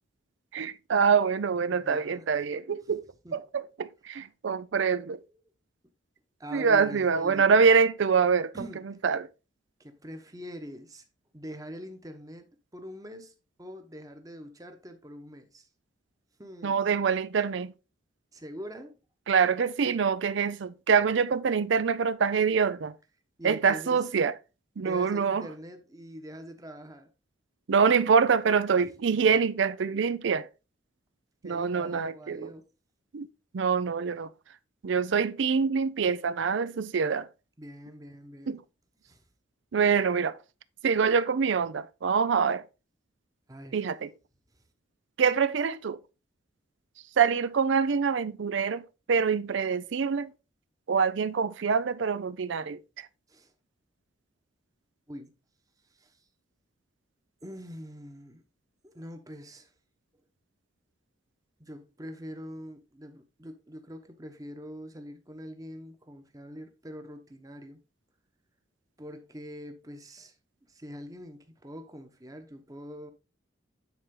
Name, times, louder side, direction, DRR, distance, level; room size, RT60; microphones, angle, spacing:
voice 1, 0.5-3.0 3.3-5.2 6.5-8.7 9.0-9.3 16.6-17.7 19.3-22.9 23.4-24.3 24.8-25.5 27.7-30.5 31.4-32.5 33.1-33.3 33.5-34.3 34.8-37.3 38.5-38.6 39.7-40.4 40.8-42.6 43.7-44.1 45.2-46.0 47.2-50.3 50.9-53.1, right 6 dB, 65° right, 0.4 m, -25 dB
voice 2, 1.7-2.3 3.2-3.4 5.3-5.4 6.4-7.6 8.5-9.0 9.8-11.0 11.3-15.7 16.4-16.8 18.3-19.0 23.4-24.1 24.8-27.1 29.0-29.3 31.4-32.7 37.6-38.6 39.1-39.2 43.5-43.8 53.3-53.5 55.1-55.3 55.9-56.2 57.4-58.4 58.8-59.7 60.1-60.2 61.6-67.8 69.0-70.3 70.7-73.1, equal, 15° right, 1.0 m, -44 dB
9.5 x 4.3 x 3.8 m
head